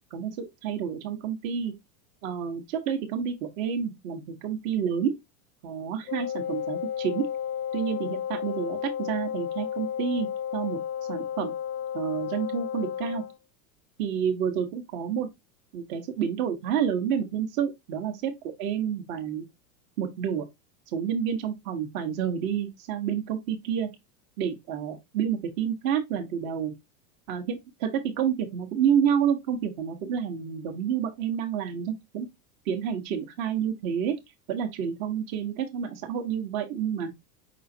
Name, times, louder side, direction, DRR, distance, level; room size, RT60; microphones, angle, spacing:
voice 1, 0.0-1.7 2.2-5.1 5.6-7.3 7.7-10.8 11.1-11.5 11.9-13.2 14.0-15.3 15.7-18.3 18.6-19.5 20.0-20.5 20.9-23.9 24.4-26.7 27.3-32.3 32.6-34.1 34.5-37.1, right 8 dB, 60° right, 1.2 m, -29 dB
Wind instrument woodwind instrument, 6.1-13.4, left 9 dB, 25° left, 0.5 m, -32 dB
5.2 x 3.6 x 2.7 m
supercardioid pair, 135°, 47 cm